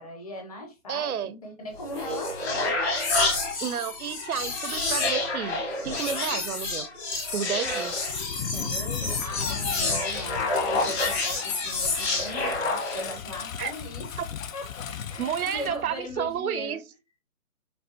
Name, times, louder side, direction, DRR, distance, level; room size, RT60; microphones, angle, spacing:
voice 1, 0.0-2.8 8.5-14.2 14.5-14.7 15.1-16.8, left 1 dB, 25° left, 0.7 m, -39 dB
voice 2, 0.9-1.3 3.6-6.9 7.3-8.1 13.6-13.7 15.2-16.8, right 8 dB, 75° right, 0.5 m, -31 dB
sound 1, 1.7-13.2, left 3 dB, 45° left, 1.6 m, -28 dB
Engine, 7.7-16.4, left 8 dB, 65° left, 0.5 m, -37 dB
5.3 x 2.3 x 2.7 m
figure-of-eight pair, 150°, 44 cm